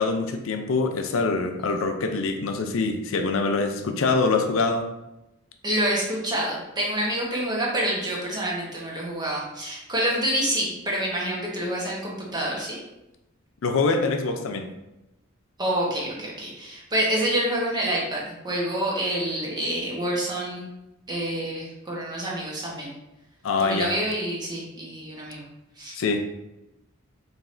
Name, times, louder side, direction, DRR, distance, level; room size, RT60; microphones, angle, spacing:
voice 1, 0.0-4.9 13.6-14.7 23.4-23.9 26.0-26.2, left 3 dB, 70° left, 5 dB, 0.4 m, -24 dB
voice 2, 5.6-12.8 15.6-20.7 21.1-22.9 23.6-25.4 25.8-26.0, right 1 dB, 20° right, -4 dB, 1.0 m, -27 dB
4.8 x 3.2 x 2.5 m, 0.94 s
head